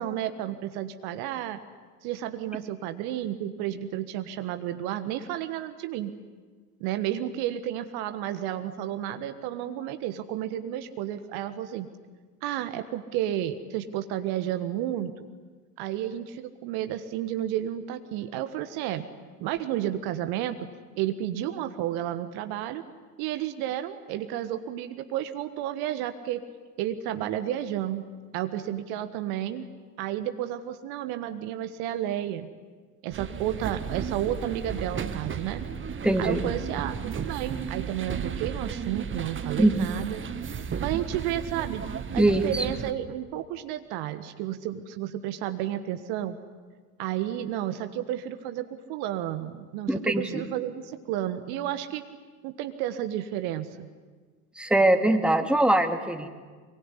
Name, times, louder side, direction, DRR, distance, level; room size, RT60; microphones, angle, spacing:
voice 1, 0.0-1.6 2.0-6.1 6.8-11.9 12.4-15.2 15.8-19.0 19.4-20.7 20.9-22.8 23.2-26.4 26.8-28.0 28.3-29.7 30.0-32.5 33.0-35.6 36.2-40.2 40.8-41.8 42.1-46.3 47.0-52.0 52.4-53.9, right 12 dB, 55° right, 9 dB, 1.5 m, -32 dB
sound 1, 33.1-42.9, right 7 dB, 25° right, 1.6 m, -34 dB
voice 2, 36.0-36.4 39.6-39.9 42.2-42.7 49.9-50.4 54.6-56.3, right 1 dB, ahead, 6 dB, 2.3 m, -22 dB
24.0 x 23.0 x 9.9 m, 1.5 s
figure-of-eight pair, 70°, 46 cm